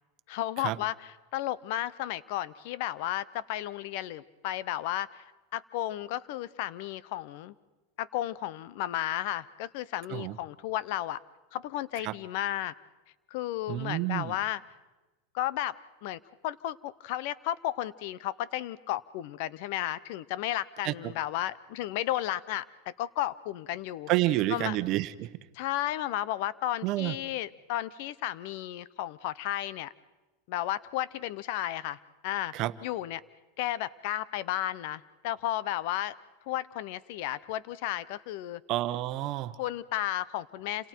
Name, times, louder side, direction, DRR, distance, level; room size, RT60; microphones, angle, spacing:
voice 1, 0.3-5.2 5.5-7.5 8.0-11.2 11.5-12.7 13.3-14.6 15.3-15.8 16.0-24.1 24.5-24.8 25.5-29.9 30.5-32.0 32.2-32.5 32.8-33.2 33.6-36.1 36.5-38.6 39.6-40.9, left 13 dB, 60° left, 19 dB, 0.8 m, -33 dB
voice 2, 13.7-14.3 20.8-20.9 24.1-25.3 26.8-27.1 32.5-32.7 38.7-39.5, right 16 dB, 45° right, 13 dB, 1.0 m, -29 dB
29.5 x 27.0 x 4.6 m, 1.2 s
supercardioid pair, 125°, 0 cm